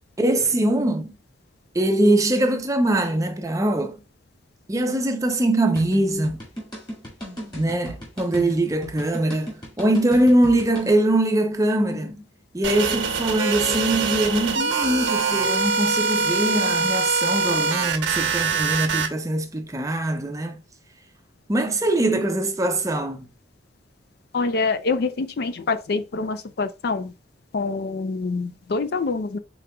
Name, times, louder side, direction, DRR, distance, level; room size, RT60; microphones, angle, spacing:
voice 1, 0.2-1.1 1.7-3.9 4.7-6.4 7.6-12.2 12.5-20.6 21.5-23.3, right 1 dB, 15° right, 0.5 m, -22 dB
sound 1, 5.8-10.9, equal, 25° left, 1.8 m, -36 dB
sound 2, 12.6-19.1, right 5 dB, 85° right, 0.9 m, -23 dB
voice 2, 24.3-27.1 27.5-29.4, left 4 dB, 55° left, 0.4 m, -26 dB
5.0 x 3.8 x 2.2 m
head